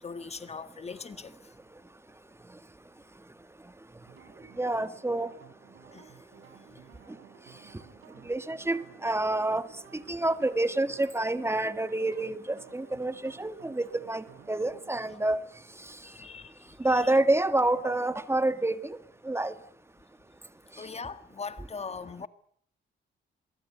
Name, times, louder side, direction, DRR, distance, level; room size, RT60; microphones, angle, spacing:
voice 1, 0.0-1.3 5.9-6.2 6.7-6.8 16.0-17.2 20.8-22.3, left 5 dB, 30° left, 1.6 m, -41 dB
sound 1, 4.1-15.1, right 8 dB, 80° right, 4.2 m, -54 dB
voice 2, 4.6-5.3 8.2-9.7 9.9-15.4 16.8-19.0 19.2-19.5, right 2 dB, 10° right, 1.7 m, -28 dB
27.0 x 23.0 x 8.4 m
cardioid pair, 90°, 20 cm